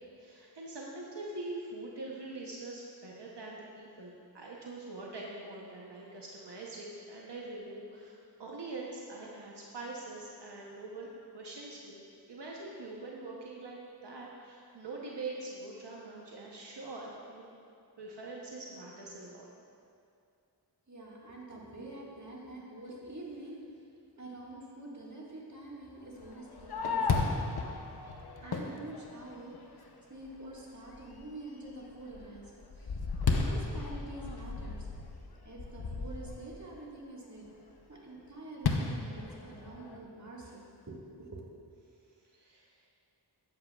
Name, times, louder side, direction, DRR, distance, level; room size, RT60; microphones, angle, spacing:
voice 1, 0.2-11.1 11.3-17.4 18.0-19.5 42.2-42.8, right 2 dB, 85° right, -3 dB, 0.9 m, -44 dB
voice 2, 20.9-23.8 24.2-27.2 28.2-33.0 33.3-34.9 35.4-37.4 37.9-41.5, right 2 dB, 45° right, -4 dB, 1.8 m, -46 dB
Fireworks, 26.2-29.7 30.3-30.4 30.9-31.3 31.7-36.6 38.6-40.0, left 4 dB, 65° left, 0.8 m, -34 dB
12.0 x 8.2 x 2.4 m, 2.4 s
wide cardioid pair, 45°, 41 cm